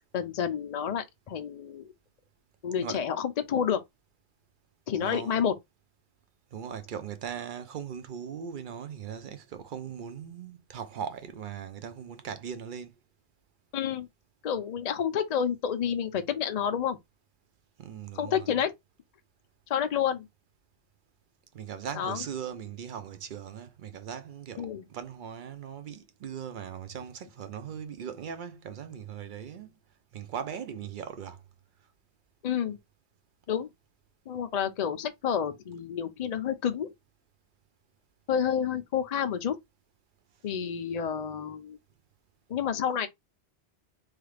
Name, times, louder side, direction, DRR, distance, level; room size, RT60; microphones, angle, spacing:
voice 1, 0.1-1.8 2.6-3.8 4.9-5.5 13.7-14.1 14.4-17.0 18.2-18.7 19.7-20.3 21.9-22.2 24.6-24.8 32.4-32.8 33.5-33.7 34.3-36.9 38.3-39.6 40.4-41.8 42.5-43.1, left 8 dB, 55° left, 0.4 m, -29 dB
voice 2, 5.0-5.4 6.5-12.9 17.8-18.5 21.5-29.8 30.1-31.4, right 8 dB, 55° right, 0.7 m, -39 dB
3.2 x 2.4 x 3.3 m
omnidirectional pair, 1.2 m